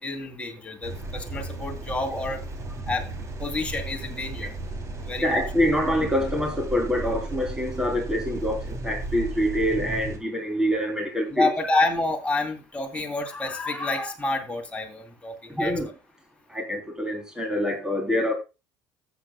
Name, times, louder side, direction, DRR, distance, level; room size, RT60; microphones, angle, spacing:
voice 1, 0.0-2.4 2.9-3.0 3.4-4.5 5.0-5.3 11.3-15.9, left 2 dB, 15° left, 3.0 m, -28 dB
sound 1, 0.8-10.2, right 2 dB, 35° right, 2.9 m, -35 dB
voice 2, 5.2-11.5 15.5-15.9 16.5-18.3, equal, 10° right, 3.3 m, -25 dB
15.0 x 8.1 x 2.3 m
supercardioid pair, 85°, 9 cm